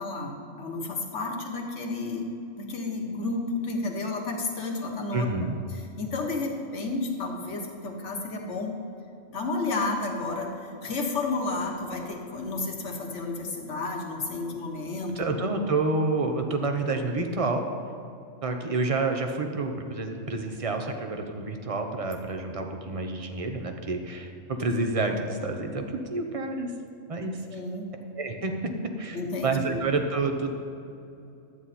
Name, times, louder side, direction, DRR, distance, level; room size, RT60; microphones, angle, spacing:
voice 1, 0.0-2.3 2.6-5.3 5.7-8.8 9.3-15.3 27.5-27.9 29.1-29.8, left 3 dB, 60° left, 1 dB, 1.6 m, -31 dB
voice 2, 5.1-5.6 15.2-17.6 18.4-25.8 26.1-26.7 27.1-27.4 28.1-29.2 29.4-30.5, right 3 dB, 30° right, 5 dB, 0.8 m, -28 dB
12.0 x 9.2 x 4.2 m, 2.7 s
omnidirectional pair, 1.4 m